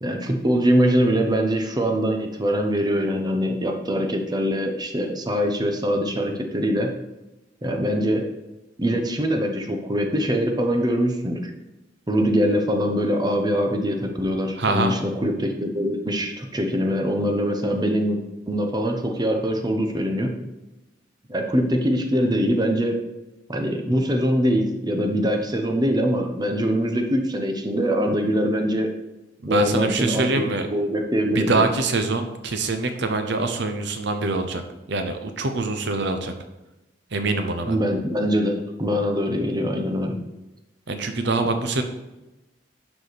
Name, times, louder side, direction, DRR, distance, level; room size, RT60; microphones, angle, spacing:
voice 1, 0.0-6.9 7.6-8.2 8.8-11.5 12.1-18.2 18.5-20.4 21.3-23.0 23.5-28.9 29.5-31.6 37.7-40.2, equal, 20° right, 3 dB, 0.9 m, -23 dB
voice 2, 14.6-15.0 29.4-30.7 31.3-34.6 34.9-36.3 37.1-37.8 40.9-41.8, right 3 dB, 65° right, 7 dB, 0.9 m, -24 dB
11.5 x 4.9 x 4.2 m, 1.0 s
head